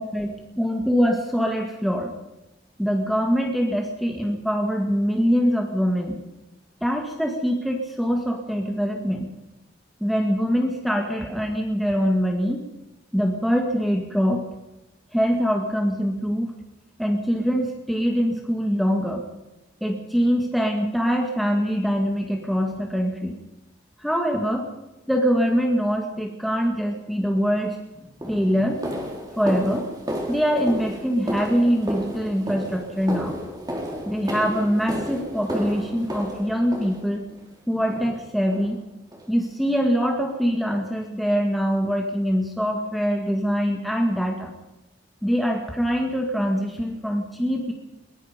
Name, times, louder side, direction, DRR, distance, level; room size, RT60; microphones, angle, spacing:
voice 1, 0.0-2.1 2.8-6.2 6.8-9.3 10.0-12.6 13.1-14.4 15.1-16.6 17.0-19.2 19.8-23.4 24.0-24.7 25.1-27.8 28.2-28.8 29.4-29.9 30.3-33.4 34.1-37.2 37.7-38.8 39.3-44.5 45.2-47.7, equal, ahead, 1 dB, 2.1 m, -23 dB
sound 1, 27.5-27.7 28.2-37.4 37.9-38.2 38.5-38.7 39.1-39.3 39.7-39.8 40.3-40.4, equal, 20° right, 4.3 m, -32 dB
23.0 x 21.5 x 5.3 m, 0.98 s
head